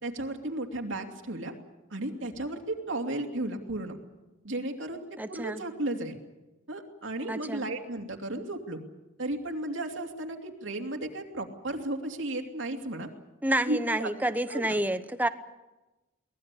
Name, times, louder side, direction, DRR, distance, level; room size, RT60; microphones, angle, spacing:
voice 1, 0.0-1.5 1.9-4.0 4.4-6.2 6.7-8.8 9.2-13.1 13.7-14.1 14.5-14.8, right 1 dB, 70° right, 3 dB, 2.9 m, -34 dB
voice 2, 5.2-5.6 7.3-7.7 13.4-15.3, right 1 dB, 10° right, 11 dB, 1.0 m, -29 dB
24.0 x 19.0 x 8.5 m, 1.1 s
head